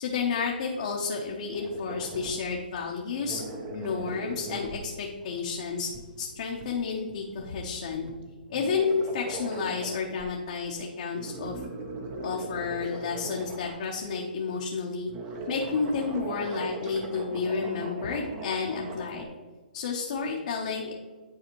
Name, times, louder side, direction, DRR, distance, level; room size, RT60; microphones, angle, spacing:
voice 1, 0.0-3.4 3.7-5.9 6.2-8.1 8.5-11.6 12.2-15.1 15.5-19.3 19.7-20.9, left 5 dB, 50° left, -2 dB, 1.0 m, -31 dB
sound 1, 1.5-2.5 2.8-2.9 3.2-10.3 10.7-10.8 11.1-14.2 15.0-19.2, right 2 dB, 25° right, 1.0 m, -40 dB
10.0 x 4.0 x 3.1 m, 1.4 s
hypercardioid pair, 145°, 5 cm